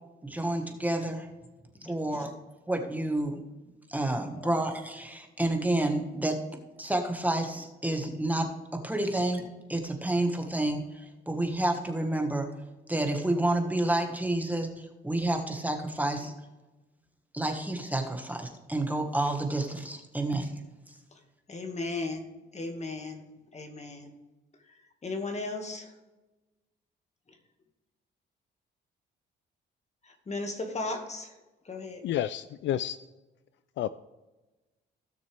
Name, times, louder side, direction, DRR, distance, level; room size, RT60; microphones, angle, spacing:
voice 1, 0.2-1.3 1.8-2.3 2.7-3.4 3.9-6.4 6.8-8.5 8.7-12.5 12.9-16.3 17.3-20.5, right 1 dB, 10° right, 4 dB, 1.6 m, -29 dB
voice 2, 21.5-23.2 23.5-24.1 25.0-25.9 30.0-31.3 31.7-32.0, left 3 dB, 35° left, 5 dB, 2.0 m, -36 dB
voice 3, 32.0-33.0 33.8-33.9, left 11 dB, 70° left, 15 dB, 0.4 m, -30 dB
16.5 x 6.6 x 3.5 m, 1.1 s
cardioid pair, 90°, 20 cm